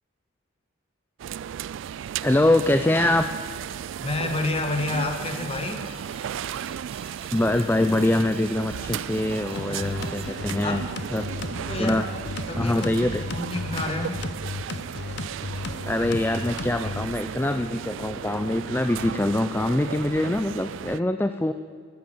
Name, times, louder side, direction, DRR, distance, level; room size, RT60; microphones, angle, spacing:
sound 1, 1.2-21.0, right 9 dB, 75° right, 0.3 m, -35 dB
voice 1, 2.2-3.3 7.3-10.8 11.1-12.1 12.5-13.2 15.6-21.5, left 1 dB, 10° left, 8 dB, 0.4 m, -24 dB
voice 2, 4.0-5.9 9.7-9.9 10.6-10.8 11.5-12.1 12.5-14.2, left 2 dB, 30° left, 4 dB, 1.7 m, -29 dB
sound 2, 4.7-11.1, right 3 dB, 30° right, 1.4 m, -47 dB
sound 3, 9.6-17.1, left 3 dB, 55° left, 0.8 m, -35 dB
14.0 x 13.5 x 7.2 m, 2.1 s
head